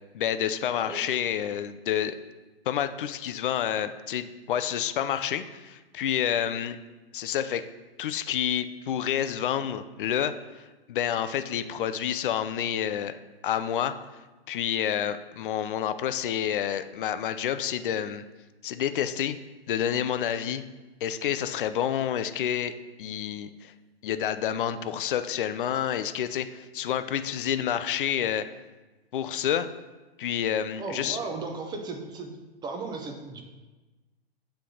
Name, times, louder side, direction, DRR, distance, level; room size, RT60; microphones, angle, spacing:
voice 1, 0.1-2.2 2.7-6.8 7.1-7.6 8.0-10.6 10.9-13.1 13.4-13.9 14.5-18.2 18.6-19.4 19.7-20.6 21.0-22.7 23.0-23.7 24.0-28.4 29.1-29.7 30.2-31.2, left 10 dB, 55° left, 11 dB, 0.5 m, -29 dB
voice 2, 30.8-32.3 32.6-33.4, right 3 dB, 15° right, 3 dB, 0.6 m, -35 dB
7.3 x 3.4 x 3.9 m, 1.2 s
figure-of-eight pair, 110°, 31 cm